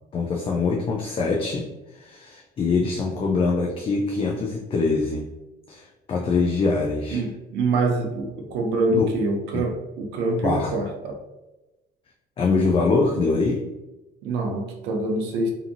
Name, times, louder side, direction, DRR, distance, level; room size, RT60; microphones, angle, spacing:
voice 1, 0.1-5.3 5.7-7.2 8.9-9.1 10.4-10.7 12.4-13.6, left 4 dB, 35° left, 0 dB, 0.4 m, -24 dB
voice 2, 7.1-11.2 14.2-15.5, right 2 dB, 90° right, 2 dB, 0.6 m, -25 dB
2.7 x 2.6 x 2.5 m, 1.0 s
cardioid pair, 110°, 17 cm